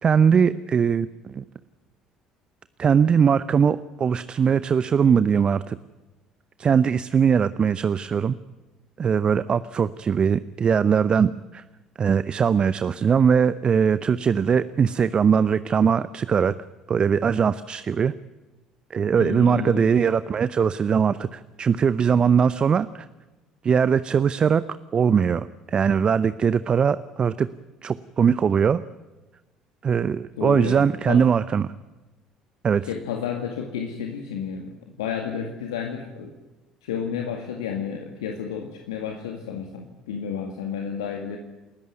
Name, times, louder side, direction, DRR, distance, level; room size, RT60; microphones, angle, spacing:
voice 1, 0.0-1.4 2.8-5.8 6.6-8.4 9.0-11.6 12.0-16.5 16.9-18.1 18.9-23.1 23.6-24.6 24.9-27.5 27.8-28.8 29.8-31.7 32.6-32.8, right 7 dB, 40° right, 15 dB, 0.7 m, -21 dB
voice 2, 19.2-19.8 30.4-31.2 32.8-36.3 36.8-41.4, left 7 dB, 75° left, 3 dB, 2.0 m, -31 dB
28.5 x 14.0 x 9.3 m, 1.1 s
figure-of-eight pair, 55°, 3 cm